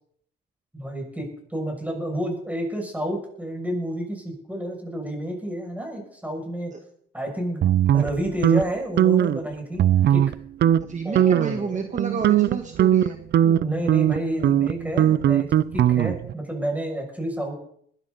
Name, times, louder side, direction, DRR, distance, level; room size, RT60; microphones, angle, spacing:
voice 1, 0.7-6.7 7.1-7.6 7.9-9.8 10.1-10.2 11.0-11.8 13.4-15.5 15.7-17.5, right 1 dB, 5° right, 1 dB, 6.6 m, -30 dB
sound 1, 7.6-8.6 9.0-9.4 9.8-10.3 10.6-10.8 11.2-11.6 12.0-16.3, right 11 dB, 60° right, 0.5 m, -19 dB
voice 2, 10.9-13.2, right 5 dB, 40° right, 4 dB, 1.7 m, -30 dB
21.0 x 12.5 x 4.1 m, 0.66 s
cardioid pair, 90°, 20 cm